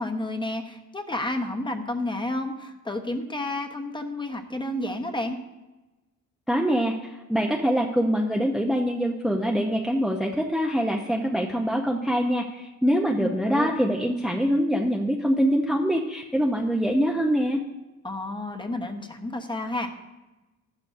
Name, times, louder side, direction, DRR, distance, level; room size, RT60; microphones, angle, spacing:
voice 1, 0.0-5.4 13.2-13.7 18.0-19.9, left 1 dB, 15° left, 5 dB, 1.1 m, -31 dB
voice 2, 6.5-6.9 7.3-17.6, equal, ahead, 0 dB, 0.8 m, -24 dB
13.0 x 11.5 x 2.7 m, 1.1 s
cardioid pair, 90°, 30 cm